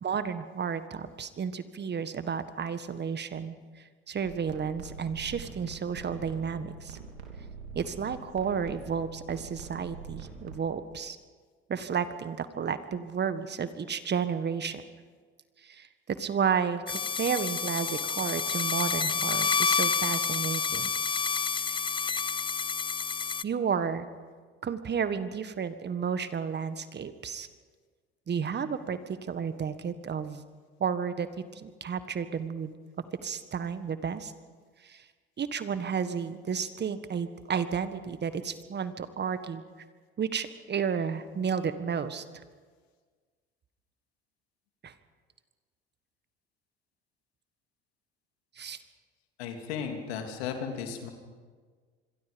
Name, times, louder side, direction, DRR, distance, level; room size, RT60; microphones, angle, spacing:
voice 1, 0.0-7.0 7.7-11.2 11.7-14.8 15.6-20.9 21.5-21.8 23.4-24.1 24.6-27.5 28.3-30.4 30.8-31.3 31.5-32.7 33.2-34.3 34.8-35.0 35.4-39.6 40.2-42.2 44.8-44.9 48.6-48.8, right 6 dB, 35° right, 11 dB, 1.6 m, -32 dB
sound 1, 4.2-10.6, right 4 dB, 85° right, 3.1 m, -44 dB
sound 2, 16.9-23.4, left 5 dB, 15° left, 0.5 m, -29 dB
voice 2, 49.4-51.1, left 7 dB, 75° left, 4 dB, 3.1 m, -35 dB
26.5 x 22.5 x 5.3 m, 1.5 s
hypercardioid pair, 70°, 31 cm